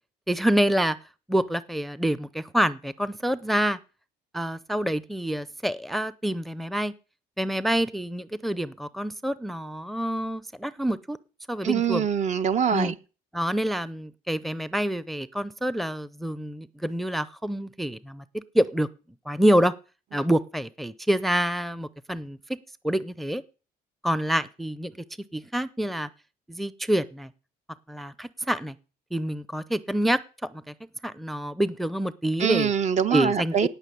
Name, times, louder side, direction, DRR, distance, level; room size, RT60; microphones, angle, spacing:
voice 1, 0.3-1.0 1.3-3.8 4.3-6.9 7.4-11.2 11.5-12.1 12.7-12.9 13.3-18.9 19.3-19.7 20.1-22.4 22.8-23.4 24.0-24.9 25.3-26.1 26.5-27.3 27.9-28.7 29.1-30.2 30.7-30.8 31.0-32.7 33.1-33.7, right 1 dB, ahead, 0.6 m, -27 dB
voice 2, 11.6-12.9 32.4-33.7, right 8 dB, 45° right, 0.8 m, -24 dB
18.0 x 6.0 x 8.4 m
cardioid pair, 110°, 17 cm